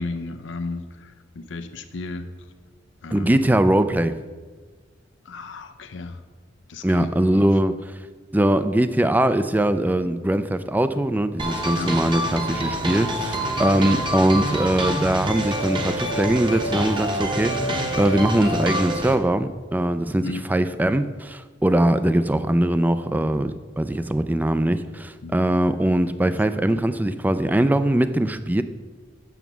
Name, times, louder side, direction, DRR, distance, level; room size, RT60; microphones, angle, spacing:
voice 1, 0.0-2.3 3.0-3.5 5.3-6.2 6.7-7.5 11.7-11.9 20.2-20.5 25.2-25.3, left 3 dB, 85° left, 8 dB, 0.6 m, -34 dB
voice 2, 3.1-4.1 6.8-8.0 8.3-28.6, right 1 dB, 10° right, 11 dB, 0.3 m, -21 dB
sound 1, 11.4-19.1, right 1 dB, 25° right, 0.9 m, -26 dB
7.2 x 6.8 x 6.1 m, 1.4 s
head